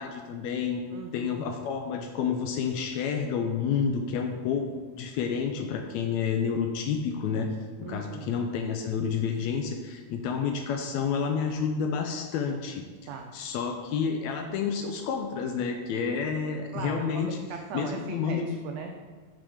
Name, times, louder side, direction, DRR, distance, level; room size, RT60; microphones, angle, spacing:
voice 1, 0.0-0.8 1.1-7.5 7.9-12.8 13.3-17.4 17.7-18.5, left 6 dB, 80° left, 4 dB, 1.7 m, -29 dB
voice 2, 0.9-1.5 7.8-8.3 13.1-13.3 16.7-19.1, right 5 dB, 85° right, 3 dB, 1.5 m, -39 dB
5.9 x 5.1 x 4.8 m, 1.5 s
omnidirectional pair, 3.5 m